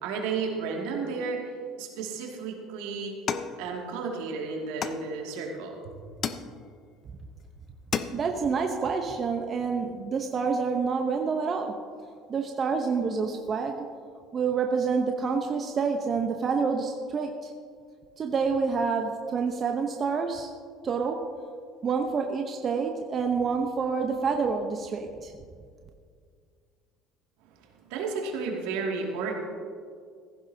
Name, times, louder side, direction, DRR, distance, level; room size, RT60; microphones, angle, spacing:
voice 1, 0.0-1.5 1.8-3.2 3.6-6.0 27.4-27.5 27.8-29.4, right 4 dB, 75° right, 0 dB, 2.4 m, -32 dB
sound 1, 3.3-4.2 4.8-5.5 6.2-6.9 7.4-7.5 7.7-8.5, left 7 dB, 45° left, 0.7 m, -34 dB
voice 2, 8.1-11.7 12.3-13.9 14.3-17.5 18.2-20.5 20.8-21.2 21.8-25.3, right 5 dB, 40° right, 4 dB, 0.9 m, -28 dB
15.5 x 15.0 x 2.8 m, 2.1 s
hypercardioid pair, 75°, 0 cm